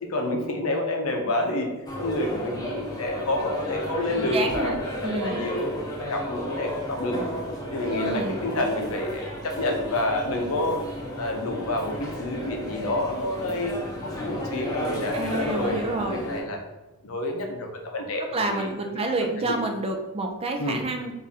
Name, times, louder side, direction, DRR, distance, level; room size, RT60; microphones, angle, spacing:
voice 1, 0.0-5.7 6.0-7.2 7.7-10.8 11.2-13.8 14.0-16.6 17.0-19.0 19.4-19.6 20.6-20.8, left 1 dB, 70° left, 2 dB, 0.7 m, -29 dB
sound 1, 1.9-16.4, equal, 20° left, 0.7 m, -33 dB
voice 2, 4.2-4.8 5.0-5.4 7.9-8.6 15.1-16.2 18.3-21.1, right 2 dB, 25° right, 4 dB, 0.4 m, -29 dB
3.5 x 2.6 x 4.0 m, 1.0 s
head